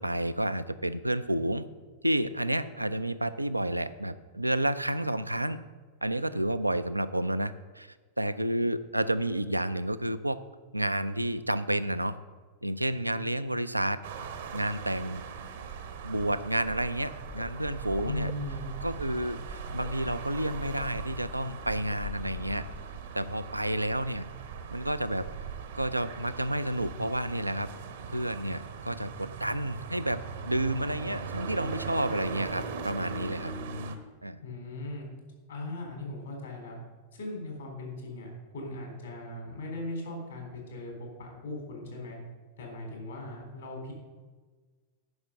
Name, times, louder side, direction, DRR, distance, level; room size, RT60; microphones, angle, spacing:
voice 1, 0.0-1.6 2.0-5.6 6.0-10.4 10.7-12.2 12.6-14.0 14.5-15.2 16.0-18.3 18.8-22.7 23.1-24.2 24.7-25.3 25.7-27.7 28.1-33.5 34.2-34.4, right 1 dB, 85° right, 13 dB, 0.4 m, -30 dB
sound 1, 14.0-34.0, right 5 dB, 60° right, 0.9 m, -40 dB
sound 2, 17.2-22.8, left 11 dB, 40° left, 0.4 m, -44 dB
voice 2, 18.0-18.6 34.4-35.1 35.5-36.8 37.1-38.3 38.5-42.2 42.6-43.9, left 1 dB, 70° left, 0 dB, 3.5 m, -38 dB
9.6 x 5.8 x 6.4 m, 1.4 s
figure-of-eight pair, 90°, 0 cm